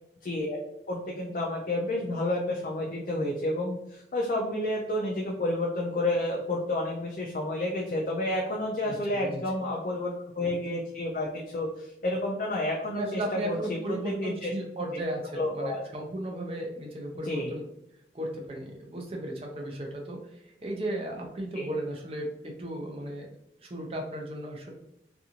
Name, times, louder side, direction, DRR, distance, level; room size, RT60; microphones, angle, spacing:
voice 1, 0.2-0.6 0.9-14.5 15.3-15.8 17.2-17.5 21.5-21.7, left 1 dB, 50° left, -1 dB, 0.4 m, -30 dB
voice 2, 12.9-17.6 18.1-20.2 20.6-23.3 23.6-24.7, right 1 dB, 35° right, 0 dB, 0.5 m, -35 dB
2.5 x 2.4 x 2.8 m, 0.81 s
head